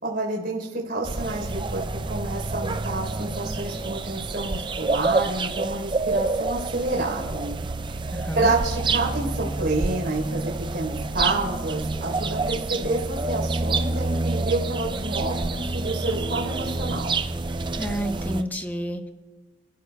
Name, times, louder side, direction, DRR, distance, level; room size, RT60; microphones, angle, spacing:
voice 1, 0.0-7.5 8.4-17.2, right 2 dB, 60° right, -2 dB, 3.9 m, -29 dB
sound 1, 1.0-18.4, right 3 dB, 25° right, 0.4 m, -28 dB
voice 2, 8.1-8.5 17.7-19.1, equal, 10° left, 5 dB, 1.0 m, -30 dB
29.5 x 12.5 x 2.3 m, 1.3 s
head